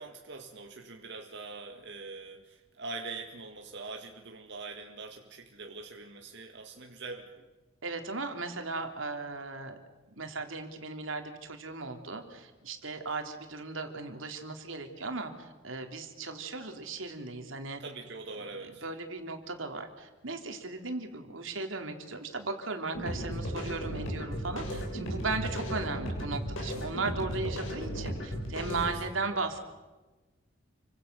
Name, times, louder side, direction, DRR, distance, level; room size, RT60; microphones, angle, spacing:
voice 1, 0.0-7.4 17.8-18.8 28.9-29.0 29.3-29.4, right 3 dB, 60° right, 2 dB, 2.0 m, -43 dB
voice 2, 7.8-9.8 10.1-17.8 18.6-29.6, right 3 dB, 80° right, 5 dB, 3.5 m, -37 dB
sound 1, 22.9-28.9, equal, 80° left, 7.6 m, -35 dB
29.5 x 25.0 x 6.9 m, 1.2 s
head